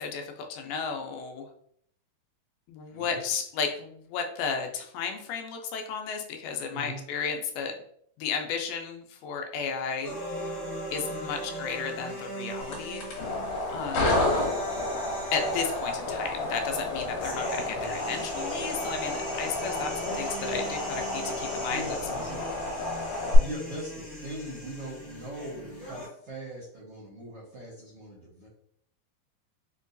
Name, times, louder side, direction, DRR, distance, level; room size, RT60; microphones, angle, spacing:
voice 1, 0.0-1.5 2.7-7.7 8.2-10.1 10.9-13.0 13.7-14.3 15.3-21.9, left 6 dB, 90° left, 4 dB, 2.2 m, -33 dB
voice 2, 2.9-3.2 6.7-7.0 14.0-14.3 17.7-18.0 21.3-22.5 23.4-28.5, right 1 dB, 75° right, -7 dB, 1.3 m, -41 dB
sound 1, 10.0-26.1, equal, 50° left, 0.6 m, -39 dB
sound 2, 12.6-23.4, left 2 dB, 70° left, 2.6 m, -31 dB
5.3 x 2.2 x 2.5 m, 0.66 s
omnidirectional pair, 3.8 m